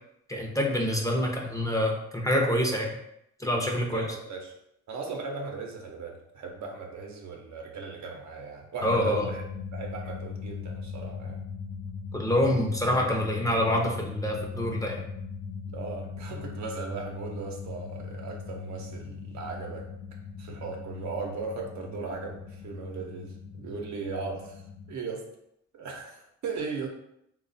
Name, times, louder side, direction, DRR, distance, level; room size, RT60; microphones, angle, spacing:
voice 1, 0.3-2.9 3.4-4.1 8.8-9.3 12.1-15.0, left 1 dB, 10° left, 0 dB, 0.7 m, -26 dB
voice 2, 3.9-4.5 4.9-9.4 9.7-11.4 15.7-19.9 20.4-24.6 24.9-25.2 25.7-26.9, right 4 dB, 65° right, 1 dB, 0.8 m, -37 dB
sound 1, 8.8-24.9, left 5 dB, 75° left, 0.6 m, -39 dB
3.2 x 2.3 x 4.0 m, 0.77 s
cardioid pair, 90°, 30 cm